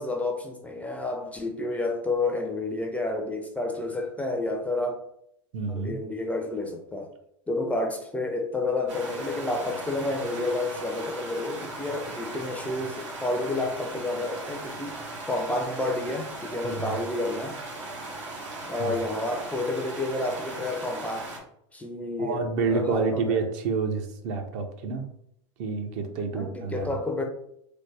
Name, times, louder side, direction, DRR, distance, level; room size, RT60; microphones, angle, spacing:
voice 1, 0.0-5.0 5.7-7.1 7.5-15.0 15.3-17.6 18.7-21.3 21.7-23.4 26.3-27.2, left 2 dB, 10° left, 3 dB, 0.4 m, -30 dB
voice 2, 5.5-6.0 16.6-16.9 18.8-18.9 22.2-25.0 25.6-26.9, right 4 dB, 50° right, 5 dB, 0.6 m, -28 dB
sound 1, 8.9-21.4, right 2 dB, 75° right, 0.9 m, -38 dB
3.3 x 2.1 x 3.3 m, 0.72 s
hypercardioid pair, 95°, 16 cm